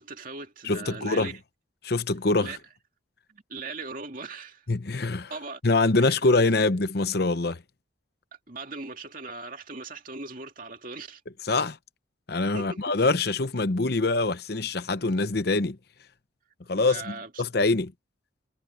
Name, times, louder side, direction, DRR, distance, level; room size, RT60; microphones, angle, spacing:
voice 1, 0.0-1.3 2.4-2.6 3.3-4.6 5.3-5.6 6.0-6.2 8.5-11.2 12.5-12.9 16.8-17.4, right 3 dB, 45° right, 2.5 m, -39 dB
voice 2, 0.6-1.3 1.8-2.6 4.7-5.3 5.6-7.6 11.4-11.8 12.3-15.8 16.7-17.9, left 3 dB, 55° left, 0.8 m, -24 dB
head